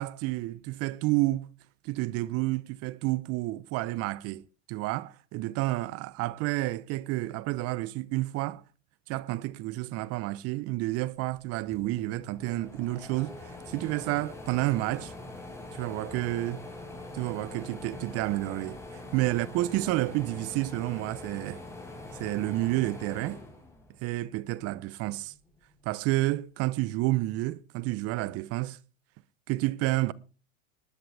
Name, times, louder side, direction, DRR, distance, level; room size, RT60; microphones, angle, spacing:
voice 1, 0.0-1.5 1.8-8.6 9.1-15.1 15.7-16.6 17.1-18.8 19.1-21.6 22.2-23.4 24.0-25.3 25.8-28.8 29.5-30.1, right 18 dB, 40° right, 0.8 m, -30 dB
sound 1, 11.7-24.3 24.7-25.9, left 2 dB, 5° left, 4.7 m, -44 dB
19.5 x 10.5 x 3.4 m
hypercardioid pair, 105°, 38 cm